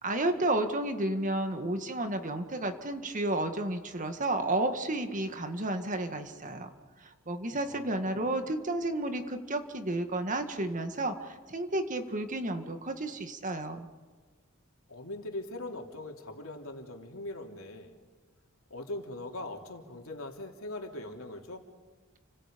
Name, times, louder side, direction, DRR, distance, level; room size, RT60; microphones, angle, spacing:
voice 1, 0.0-6.7 7.0-13.9, right 1 dB, 40° right, 7 dB, 1.8 m, -32 dB
voice 2, 7.6-8.3 14.9-18.0 18.7-21.6, left 2 dB, 85° left, 2 dB, 3.1 m, -41 dB
30.0 x 25.5 x 5.3 m, 1.5 s
head